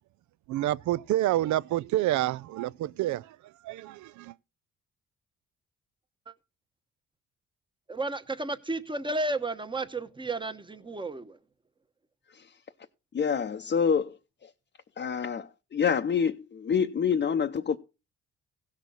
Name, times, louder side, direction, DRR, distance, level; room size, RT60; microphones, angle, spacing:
voice 1, 0.5-3.4 3.6-4.3, right 14 dB, 75° right, 0.5 m, -28 dB
voice 2, 7.9-11.4, right 2 dB, 15° right, 1.0 m, -32 dB
voice 3, 13.1-14.2 14.4-14.5 15.0-17.8, left 6 dB, 35° left, 0.7 m, -27 dB
16.0 x 6.4 x 4.0 m
cardioid pair, 90°, 30 cm